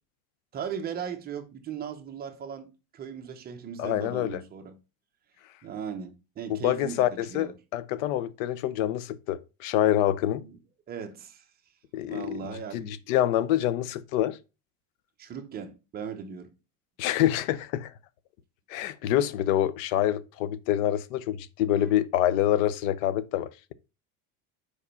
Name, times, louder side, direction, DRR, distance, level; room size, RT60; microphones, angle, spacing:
voice 1, 0.5-4.7 5.6-7.5 10.4-10.6 10.9-11.5 12.1-12.9 15.2-16.5 21.7-21.9, right 7 dB, 25° right, 0.8 m, -38 dB
voice 2, 3.8-4.4 6.5-10.4 11.9-12.4 12.7-14.4 17.0-17.9 18.7-23.7, left 12 dB, 85° left, 0.7 m, -26 dB
5.1 x 4.9 x 5.5 m
cardioid pair, 170°, 39 cm